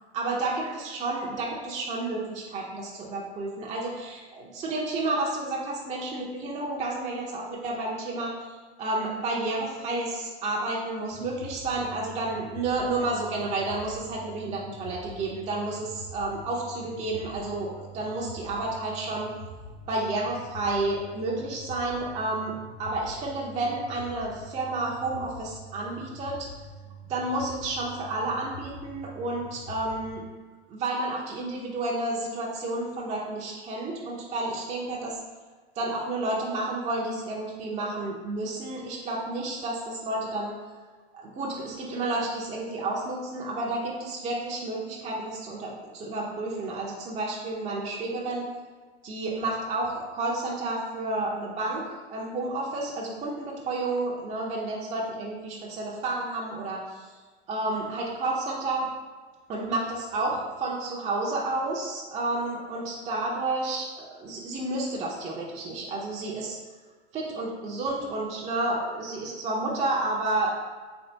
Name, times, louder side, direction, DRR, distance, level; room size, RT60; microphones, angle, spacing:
voice 1, 0.1-19.3 19.9-26.5 27.1-30.2 30.7-35.2 35.8-40.5 41.1-48.5 49.0-57.1 57.5-58.8 59.5-66.6 67.1-70.5, right 2 dB, 20° right, -3 dB, 0.5 m, -31 dB
sound 1, 11.1-30.1, equal, 90° left, 1.3 m, -45 dB
3.5 x 3.3 x 2.7 m, 1.4 s
hypercardioid pair, 100°, 34 cm